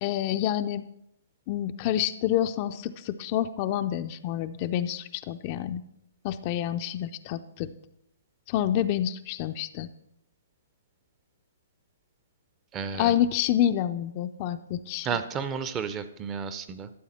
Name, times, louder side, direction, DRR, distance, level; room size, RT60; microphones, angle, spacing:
voice 1, 0.0-0.9 1.5-5.8 6.2-7.7 8.5-9.9 13.0-15.1, left 11 dB, 35° left, 9 dB, 0.4 m, -28 dB
voice 2, 12.7-13.2 15.0-16.9, right 6 dB, 20° right, 12 dB, 0.6 m, -32 dB
13.0 x 7.8 x 4.3 m, 0.81 s
hypercardioid pair, 150°, 0 cm